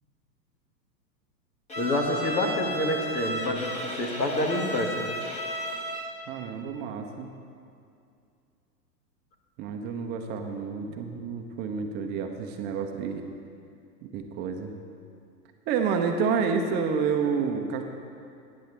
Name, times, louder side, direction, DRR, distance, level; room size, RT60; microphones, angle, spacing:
Bowed string instrument, 1.7-6.3, right 1 dB, 15° left, 1.2 m, -34 dB
voice 1, 1.8-5.0, left 1 dB, 90° left, 1 dB, 1.9 m, -27 dB
voice 2, 6.3-7.3 9.6-13.3 14.0-14.7 15.7-17.8, right 5 dB, 20° right, 4 dB, 0.5 m, -29 dB
18.0 x 9.3 x 3.2 m, 2.5 s
hypercardioid pair, 115°, 49 cm